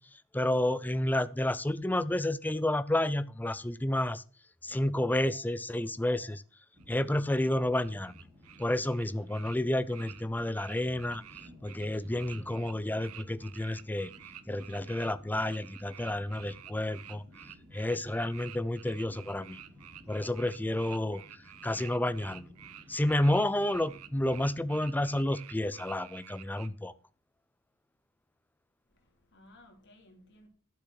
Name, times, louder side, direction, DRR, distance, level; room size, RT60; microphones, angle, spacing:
voice 1, 0.3-4.2 4.6-6.4 6.9-8.1 8.6-11.2 11.6-14.1 14.5-17.2 17.7-19.6 20.1-22.5 22.9-26.9, left 1 dB, 10° left, 16 dB, 0.5 m, -30 dB
sound 1, 6.7-25.2, left 1 dB, 35° right, 4.9 m, -56 dB
sound 2, 6.8-26.7, right 11 dB, 90° right, 0.9 m, -50 dB
voice 2, 28.9-30.5, left 1 dB, 50° left, 3 dB, 3.1 m, -58 dB
12.0 x 6.7 x 6.0 m, 0.39 s
head